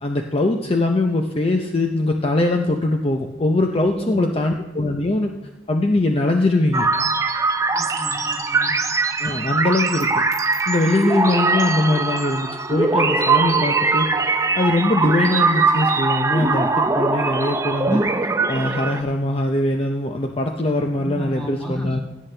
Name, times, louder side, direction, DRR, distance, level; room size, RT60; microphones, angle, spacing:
voice 1, 0.0-5.3 5.7-6.9 9.2-10.1 10.7-14.3 14.5-18.0 18.5-22.0, left 2 dB, 30° left, 3 dB, 0.6 m, -21 dB
voice 2, 3.7-4.3 7.7-8.7 21.0-22.0, equal, 5° left, -1 dB, 1.9 m, -33 dB
sound 1, 6.7-19.0, right 3 dB, 15° right, 0.5 m, -21 dB
16.5 x 8.3 x 3.3 m, 1.1 s
head